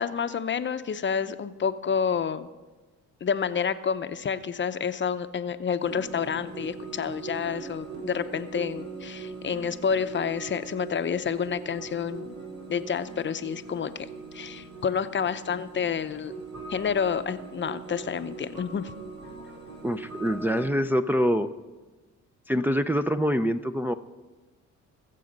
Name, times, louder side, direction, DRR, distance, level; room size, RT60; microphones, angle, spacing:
voice 1, 0.0-2.5 3.2-12.4 12.7-14.1 14.3-16.3 16.7-18.9, left 7 dB, 40° left, 11 dB, 0.7 m, -29 dB
sound 1, 5.8-20.7, right 4 dB, 75° right, 3.5 m, -41 dB
voice 2, 19.8-21.5 22.5-23.9, equal, 5° right, 6 dB, 0.5 m, -25 dB
20.5 x 7.6 x 5.2 m, 1.2 s
cardioid pair, 90°, 30 cm